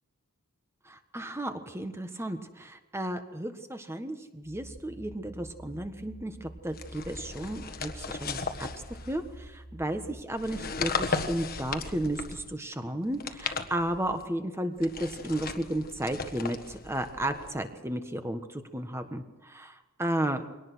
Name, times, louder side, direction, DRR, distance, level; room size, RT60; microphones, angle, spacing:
voice 1, 0.8-8.7 9.1-20.4, right 1 dB, 10° right, 7 dB, 1.4 m, -33 dB
sound 1, 4.4-10.2, right 1 dB, 15° left, 2.1 m, -48 dB
sound 2, 6.7-9.5 10.3-12.5 13.1-14.2 14.8-17.6, left 4 dB, 45° left, 1.4 m, -36 dB
23.0 x 18.5 x 6.3 m, 1.2 s
head